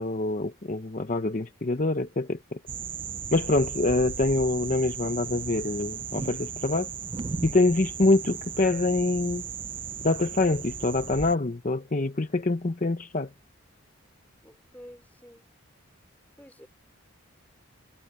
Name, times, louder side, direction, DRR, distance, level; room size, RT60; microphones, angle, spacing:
voice 1, 0.0-2.6 3.3-6.9 7.4-9.4 10.0-13.3, left 2 dB, 35° left, 0.8 m, -25 dB
sound 1, 2.7-11.4, right 6 dB, 25° right, 0.3 m, -36 dB
voice 2, 14.4-15.5 16.4-16.7, equal, 10° left, 4.3 m, -49 dB
head